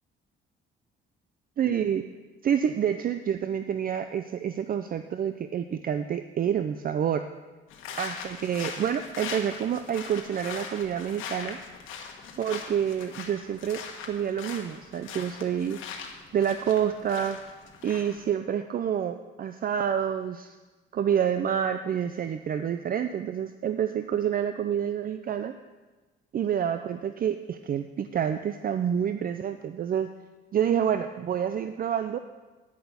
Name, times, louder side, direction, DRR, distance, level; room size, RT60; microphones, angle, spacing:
voice 1, 1.6-2.0 2.4-7.2 8.0-11.6 12.4-15.8 16.3-17.4 17.8-20.6 20.9-25.5 26.3-30.1 30.5-32.2, right 9 dB, 45° right, 9 dB, 0.5 m, -28 dB
sound 1, 7.7-18.3, left 6 dB, 85° left, 1.3 m, -41 dB
9.9 x 5.8 x 7.0 m, 1.2 s
cardioid pair, 90°, 20 cm